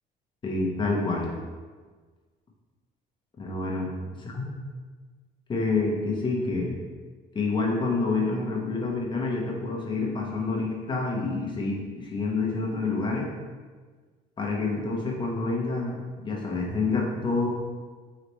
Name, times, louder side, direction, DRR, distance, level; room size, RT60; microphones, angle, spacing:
voice 1, 0.4-1.3 3.4-3.9 4.4-4.5 5.5-6.8 7.3-13.3 14.4-17.5, left 3 dB, 30° left, -2 dB, 0.9 m, -28 dB
4.0 x 3.1 x 3.1 m, 1.4 s
cardioid pair, 110°, 17 cm